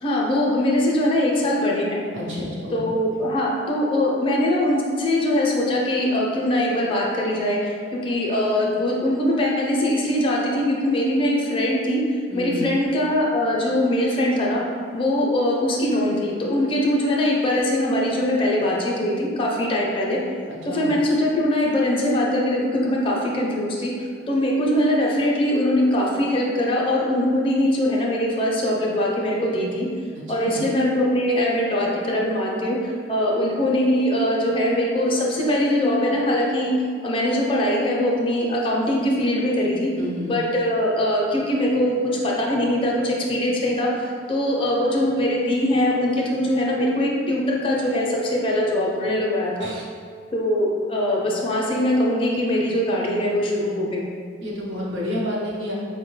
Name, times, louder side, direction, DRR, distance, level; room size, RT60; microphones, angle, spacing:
voice 1, 0.0-2.0 2.7-12.0 12.3-14.6 14.9-20.2 20.7-23.9 24.3-29.9 30.3-36.7 37.0-39.9 40.3-49.7 50.3-54.1, left 1 dB, 30° left, -3 dB, 0.5 m, -22 dB
voice 2, 2.1-2.7 12.3-12.6 20.5-20.9 30.4-30.6 40.0-40.4 49.6-49.8 54.4-55.7, left 1 dB, 80° right, -5 dB, 0.8 m, -30 dB
4.6 x 2.1 x 3.1 m, 2.1 s
head